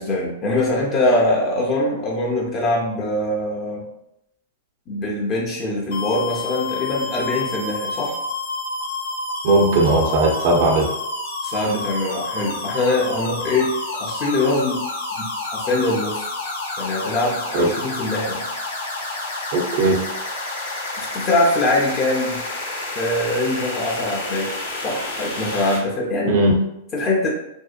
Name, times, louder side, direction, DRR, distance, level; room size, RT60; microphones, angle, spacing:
voice 1, 0.0-3.8 4.9-8.1 11.4-13.7 14.0-14.8 15.2-16.3 16.8-18.5 21.0-22.4 23.0-24.5 24.8-26.4 26.9-27.3, left 2 dB, 30° left, -3 dB, 0.5 m, -23 dB
sound 1, 5.9-25.8, left 2 dB, 85° left, 0.8 m, -29 dB
voice 2, 9.4-10.9 17.5-17.7 19.5-20.0 26.3-26.5, right 2 dB, 55° right, 0 dB, 0.5 m, -17 dB
2.7 x 2.1 x 2.4 m, 0.80 s
hypercardioid pair, 130°, 0 cm